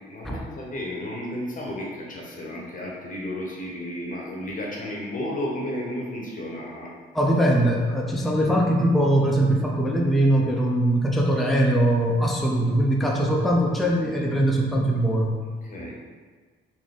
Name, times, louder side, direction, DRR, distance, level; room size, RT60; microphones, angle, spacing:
voice 1, 0.1-6.9 15.6-16.0, left 1 dB, 40° left, -2 dB, 0.8 m, -33 dB
voice 2, 7.1-15.3, right 1 dB, ahead, -1 dB, 0.5 m, -21 dB
3.9 x 2.5 x 3.4 m, 1.5 s
cardioid pair, 90°, 20 cm